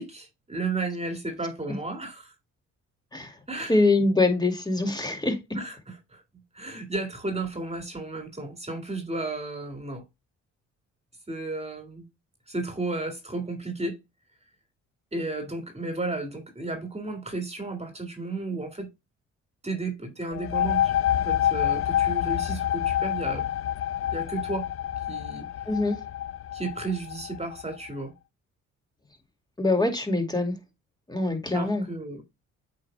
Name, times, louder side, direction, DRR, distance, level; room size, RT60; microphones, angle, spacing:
voice 1, 0.0-2.3 3.5-3.8 5.5-6.2 6.5-10.0 11.3-12.0 12.5-14.0 15.1-18.9 19.6-23.5 24.1-24.7 25.1-25.5 26.5-28.1 31.5-32.2, right 2 dB, 20° right, 2.1 m, -33 dB
voice 2, 3.7-5.4 25.7-26.0 29.6-30.5 31.1-31.9, left 2 dB, 15° left, 2.3 m, -24 dB
sound 1, 20.3-27.7, left 11 dB, 45° left, 0.5 m, -27 dB
8.2 x 5.2 x 2.2 m
cardioid pair, 90°, 30 cm